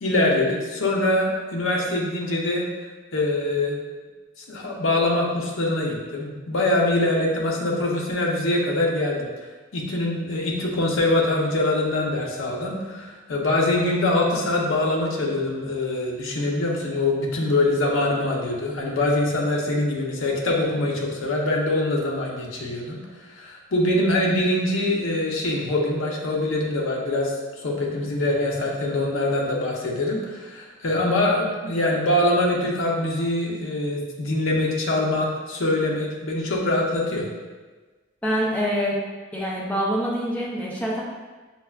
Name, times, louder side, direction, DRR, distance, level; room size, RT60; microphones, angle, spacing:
voice 1, 0.0-2.7 3.1-3.8 4.5-9.3 9.7-23.0 23.4-27.4 27.6-37.3, left 2 dB, 80° left, -2 dB, 0.6 m, -23 dB
voice 2, 38.2-39.0 39.3-41.0, equal, 5° left, -4 dB, 0.5 m, -25 dB
5.3 x 2.3 x 2.3 m, 1.3 s
head